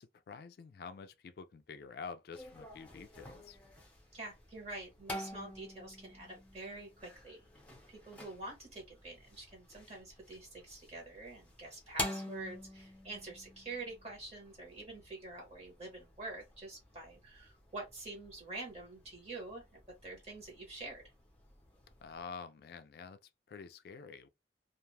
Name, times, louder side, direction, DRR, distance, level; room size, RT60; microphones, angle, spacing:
voice 1, 0.0-3.6 22.0-24.3, left 5 dB, 60° left, 0.3 m, -48 dB
sound 1, 2.3-22.2, left 1 dB, 10° left, 0.8 m, -48 dB
voice 2, 4.1-7.4 7.9-21.1, right 2 dB, 35° right, 1.1 m, -47 dB
2.4 x 2.3 x 3.1 m
head